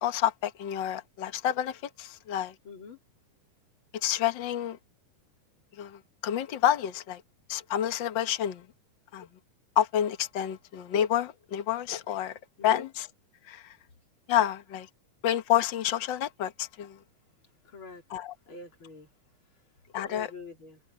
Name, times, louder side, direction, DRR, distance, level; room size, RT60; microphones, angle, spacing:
voice 1, 0.0-2.5 4.0-4.8 5.8-7.2 7.5-8.7 9.1-9.3 9.8-12.4 12.6-13.1 13.5-13.7 14.3-14.9 15.2-17.0 18.1-18.3 19.9-20.3, left 11 dB, 80° left, 1.0 m, -29 dB
voice 2, 2.6-3.0 12.6-12.9 17.6-18.0 18.5-19.1 20.1-20.8, left 4 dB, 40° left, 3.7 m, -45 dB
omnidirectional pair, 3.9 m